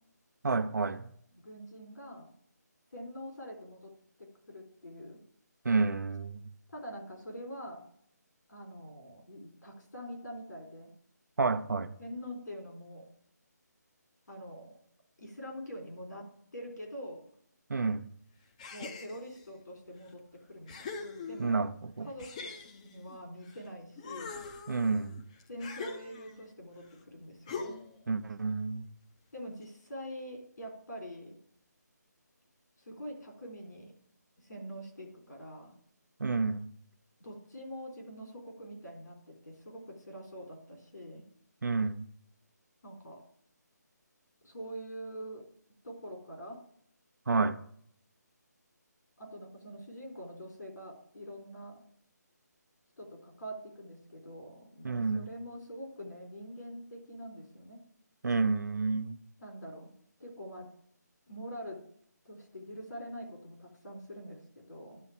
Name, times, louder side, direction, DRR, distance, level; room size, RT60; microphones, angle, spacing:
voice 1, 0.4-1.1 5.6-6.4 11.4-11.9 17.7-18.1 21.4-22.1 24.7-25.2 28.1-28.9 36.2-36.7 41.6-42.1 47.3-47.6 54.8-55.2 58.2-59.2, right 4 dB, 75° right, 0.7 m, -30 dB
voice 2, 1.3-2.3 2.9-3.9 4.2-5.2 6.7-7.9 8.5-10.9 12.0-13.1 14.3-14.8 15.2-17.2 18.7-21.7 22.0-24.4 25.5-27.8 29.3-31.4 32.9-33.9 34.4-35.8 37.2-41.3 42.8-43.2 44.4-45.4 45.8-46.6 49.2-51.8 53.0-57.8 59.4-59.9 60.2-60.7 61.3-61.8 62.2-65.0, equal, 80° left, 3.9 m, -45 dB
sound 1, 18.6-19.5 20.1-20.2 20.7-21.7 22.2-23.6 24.0-26.5 27.5-28.0, left 4 dB, 20° left, 0.7 m, -43 dB
11.0 x 4.1 x 7.2 m
figure-of-eight pair, 165°, 10 cm